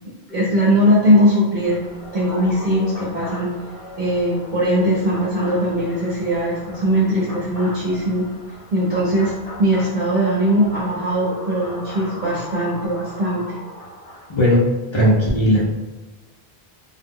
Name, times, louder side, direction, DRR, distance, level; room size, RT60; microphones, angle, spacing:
voice 1, 0.3-1.8 2.1-3.5 4.0-8.3 8.7-9.3 9.6-13.4, equal, 55° right, -7 dB, 0.7 m, -19 dB
sound 1, 1.6-14.5, left 1 dB, 65° left, 1.0 m, -38 dB
voice 2, 14.3-14.7 14.9-15.6, equal, 50° left, -5 dB, 0.3 m, -16 dB
2.0 x 2.0 x 3.5 m, 1.1 s
omnidirectional pair, 1.1 m